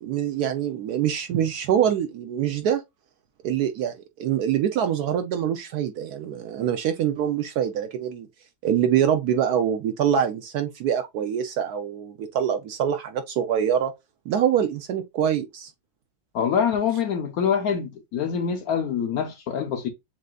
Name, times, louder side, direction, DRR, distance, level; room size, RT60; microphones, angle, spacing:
voice 1, 0.0-2.8 3.4-8.3 8.6-13.9 14.3-15.7, right 9 dB, 70° right, 0.9 m, -24 dB
voice 2, 16.3-19.9, left 7 dB, 70° left, 0.9 m, -25 dB
7.4 x 2.6 x 2.2 m
omnidirectional pair, 2.0 m